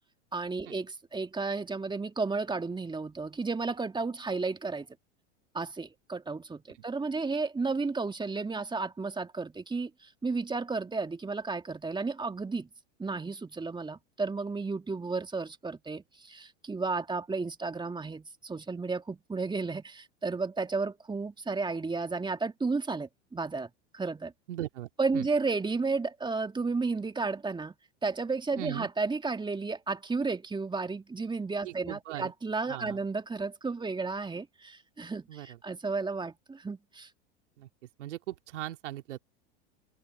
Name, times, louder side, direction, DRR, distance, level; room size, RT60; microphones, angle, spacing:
voice 1, 0.3-4.9 5.5-12.7 13.0-24.3 25.0-27.7 28.0-37.1, right 4 dB, 10° right, 2.0 m, -33 dB
voice 2, 24.5-25.3 28.6-28.9 31.6-32.3 32.7-33.0 35.3-35.6 37.6-37.7 38.0-39.2, right 13 dB, 75° right, 2.7 m, -39 dB
hypercardioid pair, 90°, 36 cm